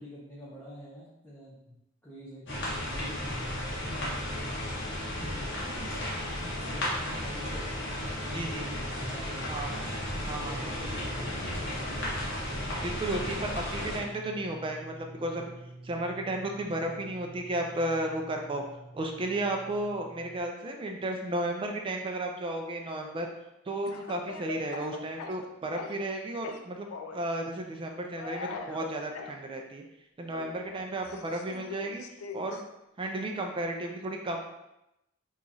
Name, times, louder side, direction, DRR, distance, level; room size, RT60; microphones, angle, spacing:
voice 1, 0.0-1.8 2.0-4.7 5.2-9.8 10.2-12.2, equal, 10° left, -9 dB, 0.7 m, -46 dB
sound 1, 2.5-14.0, left 1 dB, 60° left, 1.0 m, -34 dB
voice 2, 8.3-8.8 9.5-9.8 10.3-10.7 12.8-15.5 15.8-18.6 18.9-23.3 23.7-29.8 30.2-32.0 32.3-32.6 33.0-34.4, right 1 dB, 25° right, 3 dB, 0.3 m, -33 dB
sound 2, 9.0-20.4, right 2 dB, 85° right, 0.5 m, -47 dB
Speech / Cough, 23.9-26.1 26.4-27.2 28.1-29.4 30.3-32.6, left 5 dB, 75° left, 0.3 m, -42 dB
2.9 x 2.4 x 3.9 m, 0.89 s
head